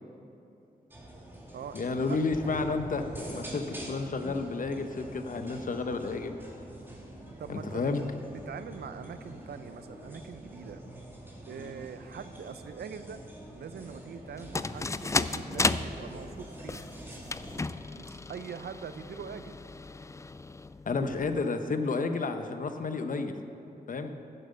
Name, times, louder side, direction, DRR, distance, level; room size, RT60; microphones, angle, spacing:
sound 1, 0.9-17.7, right 1 dB, 15° right, 2.3 m, -45 dB
voice 1, 1.7-6.4 7.5-8.0 20.9-23.4 23.9-24.1, left 3 dB, 55° left, 8 dB, 0.9 m, -31 dB
voice 2, 7.4-7.9 8.5-10.8 11.4-13.2 13.5-16.8 17.9-19.6, right 7 dB, 80° right, 11 dB, 0.6 m, -43 dB
sound 2, 14.4-21.4, left 3 dB, 20° left, 0.3 m, -34 dB
11.0 x 7.7 x 6.7 m, 2.9 s
cardioid pair, 70°, 16 cm